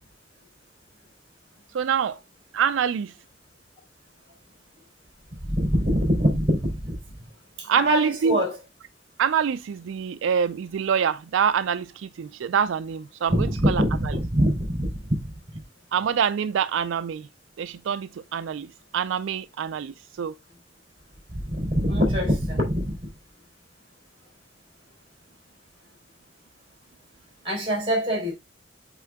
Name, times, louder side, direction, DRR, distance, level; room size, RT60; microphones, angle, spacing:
voice 1, 1.7-2.2 2.5-3.1 7.6-8.4 9.2-13.8 15.9-17.3 17.6-18.7 18.9-19.9 20.2-20.3, right 7 dB, 80° right, 0.4 m, -25 dB
voice 2, 5.4-7.0 7.6-8.6 13.3-15.1 21.4-23.1 27.4-28.3, equal, 30° right, 3.5 m, -24 dB
7.9 x 3.7 x 3.5 m
head